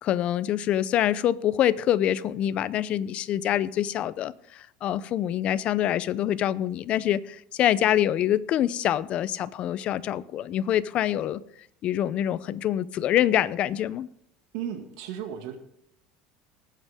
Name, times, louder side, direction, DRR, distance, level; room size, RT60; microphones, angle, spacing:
voice 1, 0.0-11.4 11.8-14.1, left 11 dB, 40° left, 17 dB, 0.6 m, -25 dB
voice 2, 14.5-15.6, right 9 dB, 75° right, 5 dB, 2.0 m, -34 dB
20.0 x 8.2 x 3.6 m, 0.74 s
cardioid pair, 155°, 3 cm